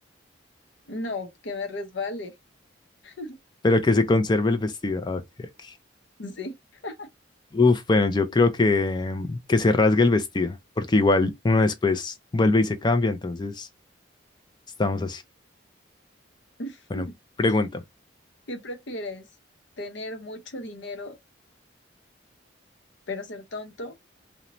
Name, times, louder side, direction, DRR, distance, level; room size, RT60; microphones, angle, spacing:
voice 1, 0.9-2.3 3.0-3.4 6.2-6.5 6.8-7.1 16.6-17.1 18.5-19.3 19.8-21.2 23.1-24.0, left 2 dB, 65° left, 0.7 m, -35 dB
voice 2, 3.6-5.7 7.5-13.7 14.8-15.2 16.9-17.0 17.4-17.8, left 3 dB, 20° left, 0.3 m, -22 dB
2.6 x 2.1 x 2.9 m
head